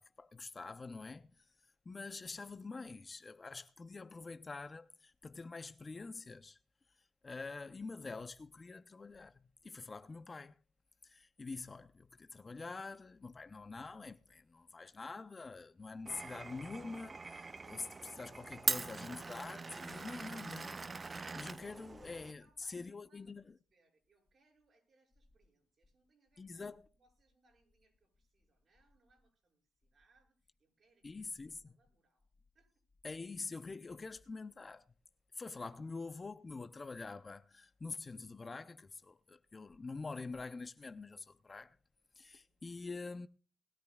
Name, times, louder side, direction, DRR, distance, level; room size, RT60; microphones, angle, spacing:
voice 1, 0.0-1.5 1.9-6.6 7.2-10.6 11.0-23.4 26.4-26.9 31.0-31.7 33.0-34.9 35.3-41.8 42.2-43.3, left 3 dB, 30° left, 0.6 m, -46 dB
Glass, 16.1-22.3, right 3 dB, 30° right, 0.5 m, -42 dB
voice 2, 22.2-32.3 32.5-33.1 42.2-42.6, right 3 dB, 45° right, 7.2 m, -75 dB
20.5 x 13.0 x 2.4 m
cardioid pair, 90°, 0 cm